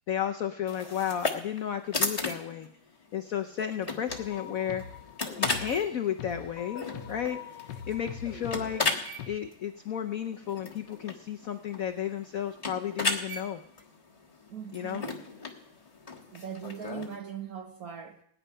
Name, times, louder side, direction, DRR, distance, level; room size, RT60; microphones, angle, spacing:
voice 1, 0.1-2.7 3.1-4.8 5.4-8.8 9.3-13.6 14.7-15.1, left 9 dB, 80° left, 0.7 m, -33 dB
sound 1, 0.7-17.2, left 3 dB, 20° left, 1.2 m, -36 dB
sound 2, 4.1-9.4, left 8 dB, 65° left, 1.3 m, -43 dB
voice 2, 14.5-15.4 16.3-18.2, right 7 dB, 60° right, 0.9 m, -40 dB
17.0 x 9.9 x 5.5 m
omnidirectional pair, 2.3 m